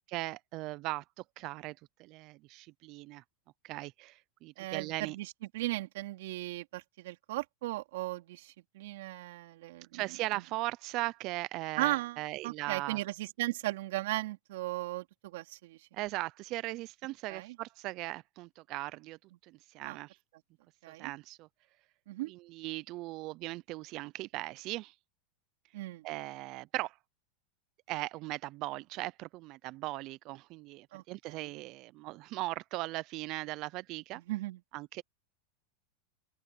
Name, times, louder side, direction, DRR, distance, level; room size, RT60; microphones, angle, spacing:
voice 1, 0.1-1.0 1.4-1.7 2.0-3.2 3.6-5.2 9.9-13.0 15.9-19.2 19.4-20.2 21.0-21.5 22.3-24.9 26.0-26.9 27.9-34.2 34.7-35.0, right 19 dB, 45° right, 0.4 m, -38 dB
voice 2, 4.6-10.4 11.8-15.9 17.3-17.6 19.8-20.0 20.8-21.1 22.1-22.3 25.7-26.1 30.9-31.5 34.1-34.6, right 18 dB, 70° right, 3.6 m, -37 dB
open air
supercardioid pair, 140°, 0 cm